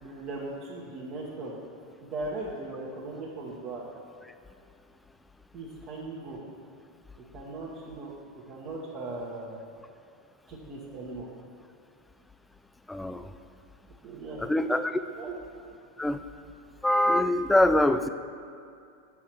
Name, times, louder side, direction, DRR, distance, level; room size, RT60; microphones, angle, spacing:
voice 1, 0.0-1.6 2.0-3.8 5.5-6.4 7.3-8.1 8.5-9.6 10.5-11.3 14.0-14.4 15.2-15.3, right 2 dB, 45° right, -5 dB, 1.1 m, -38 dB
voice 2, 12.9-13.3 14.4-15.0 16.0-16.2 16.8-18.1, left 1 dB, 5° left, 10 dB, 0.3 m, -24 dB
6.9 x 4.7 x 4.5 m, 2.4 s
hypercardioid pair, 95°, 0 cm